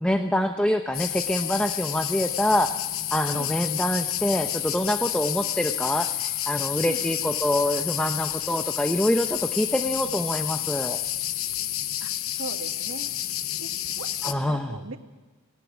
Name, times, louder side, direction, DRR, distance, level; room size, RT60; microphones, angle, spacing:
voice 1, 0.0-2.8 3.1-11.0 14.2-14.7, left 1 dB, 5° left, 6 dB, 0.8 m, -25 dB
sound 1, 0.9-14.3, left 12 dB, 80° left, 0.9 m, -30 dB
voice 2, 3.3-3.6 6.8-7.1 12.0-13.1 13.6-13.7 14.0-15.0, right 3 dB, 80° right, 5 dB, 1.7 m, -39 dB
19.0 x 18.5 x 7.4 m, 1.2 s
head